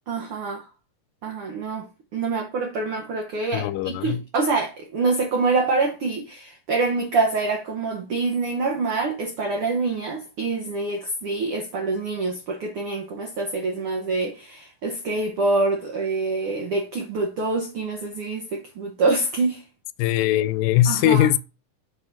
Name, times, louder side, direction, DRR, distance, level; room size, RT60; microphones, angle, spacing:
voice 1, 0.1-0.7 1.2-1.9 2.1-19.6 20.9-21.3, right 3 dB, 90° right, 1.2 m, -26 dB
voice 2, 3.5-4.2 20.0-21.4, left 12 dB, 85° left, 2.2 m, -20 dB
6.8 x 3.5 x 5.7 m
omnidirectional pair, 3.9 m